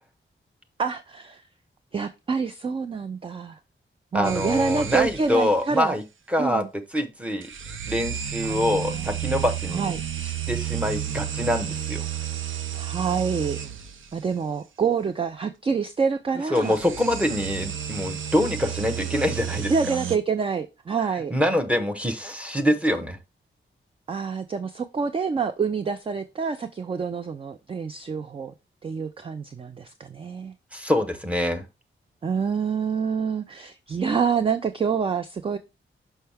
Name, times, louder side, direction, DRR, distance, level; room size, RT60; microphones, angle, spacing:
voice 1, 0.8-1.4 1.9-3.6 4.1-6.0 6.4-6.7 8.4-9.2 9.7-10.0 12.7-13.6 14.1-16.8 19.7-21.3 24.1-28.5 28.8-30.5 32.2-35.6, right 5 dB, 25° right, 10 dB, 0.4 m, -27 dB
voice 2, 4.1-6.0 6.3-6.6 6.9-7.5 7.9-9.8 10.5-12.1 16.5-19.9 21.3-23.2 30.7-31.6, left 1 dB, 5° right, 7 dB, 0.8 m, -25 dB
sound 1, 4.2-5.5 7.4-14.1 16.5-20.2, right 10 dB, 75° right, 0.6 m, -32 dB
5.7 x 5.5 x 3.4 m, 0.25 s
wide cardioid pair, 145°, 21 cm